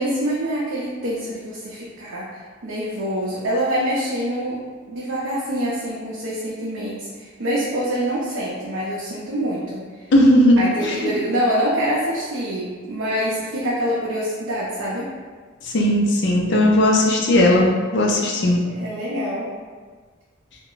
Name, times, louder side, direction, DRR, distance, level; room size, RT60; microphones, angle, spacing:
voice 1, 0.0-2.3 2.6-4.6 4.9-9.8 10.6-15.1 18.6-19.5, equal, 65° right, -8 dB, 0.5 m, -25 dB
voice 2, 10.1-11.1 15.7-18.6, left 1 dB, 60° left, 0 dB, 0.5 m, -17 dB
2.2 x 2.0 x 3.8 m, 1.5 s
head